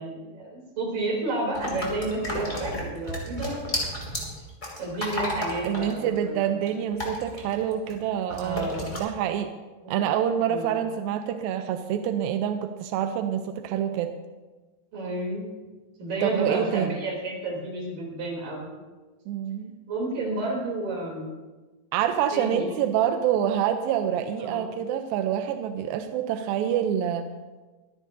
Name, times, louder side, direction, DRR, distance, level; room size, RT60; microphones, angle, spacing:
voice 1, 0.0-3.6 4.8-6.5 6.8-6.9 8.4-8.9 9.8-9.9 10.5-10.8 14.9-15.4 16.0-18.7 19.9-21.3 22.3-22.7 24.4-24.7, right 2 dB, 55° right, -3 dB, 4.7 m, -31 dB
sound 1, 1.5-8.0 8.3-9.0, left 1 dB, 15° left, 2.3 m, -33 dB
voice 2, 5.6-9.5 9.9-14.1 16.2-16.9 19.3-19.7 21.9-27.3, right 9 dB, 80° right, 7 dB, 2.1 m, -27 dB
24.0 x 10.0 x 2.7 m, 1.2 s
omnidirectional pair, 4.7 m